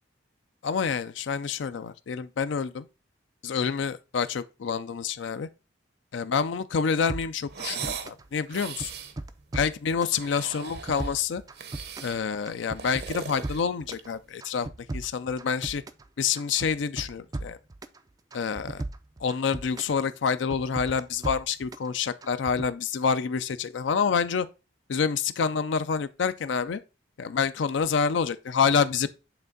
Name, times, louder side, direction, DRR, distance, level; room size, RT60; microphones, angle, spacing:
voice 1, 0.6-2.9 3.4-5.5 6.1-8.9 9.5-11.4 12.0-14.7 14.9-15.8 16.2-17.6 18.3-18.8 19.2-24.5 24.9-26.8 27.2-29.1, left 6 dB, 70° left, 0.4 m, -27 dB
sound 1, 7.1-8.3 8.5-10.2 10.5-12.2 12.4-14.1 14.4-16.1 16.4-18.0 18.3-20.0 20.3-21.9 22.2-22.7, right 2 dB, 20° right, 0.3 m, -37 dB
sound 2, 7.5-8.1 8.5-9.2 10.0-11.2 11.5-12.2 12.6-14.2, right 6 dB, 55° right, 0.7 m, -38 dB
7.9 x 3.5 x 3.9 m
head